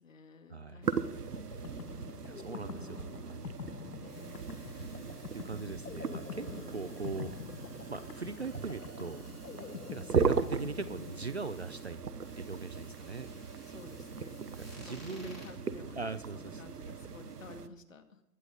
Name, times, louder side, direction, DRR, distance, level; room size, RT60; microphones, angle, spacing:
voice 1, 0.0-2.0 4.0-4.5 9.5-9.8 13.6-14.4 14.8-18.2, left 4 dB, 55° left, 6 dB, 2.1 m, -52 dB
voice 2, 0.5-0.8 2.2-3.6 5.3-7.4 7.9-9.2 9.9-12.0 12.4-13.3 14.6-15.4 16.0-16.6, right 4 dB, 45° right, 13 dB, 0.5 m, -40 dB
sound 1, 0.8-17.7, right 5 dB, 75° right, 1.1 m, -38 dB
sound 2, 1.3-11.9, left 6 dB, 70° left, 1.0 m, -46 dB
sound 3, 4.1-15.5, equal, ahead, 1.2 m, -58 dB
20.5 x 9.0 x 4.0 m, 0.86 s
figure-of-eight pair, 160°, 47 cm